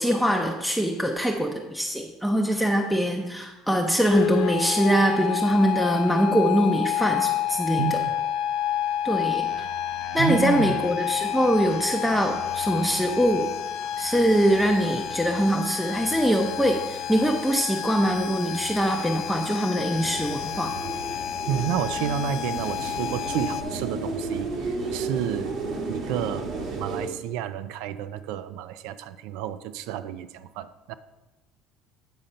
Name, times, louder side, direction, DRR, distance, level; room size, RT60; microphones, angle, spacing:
voice 1, 0.0-8.0 9.0-9.7 10.1-13.5 14.0-20.7, equal, ahead, 1 dB, 0.6 m, -23 dB
sound 1, 4.1-23.6, left 10 dB, 65° left, 0.5 m, -30 dB
voice 2, 7.8-8.2 10.2-10.8 21.5-25.5 25.9-26.5 26.7-30.9, right 10 dB, 80° right, 13 dB, 0.4 m, -30 dB
sound 2, 19.8-27.1, right 3 dB, 60° right, 1.3 m, -33 dB
8.7 x 3.8 x 5.4 m, 1.1 s
cardioid pair, 130°, 0 cm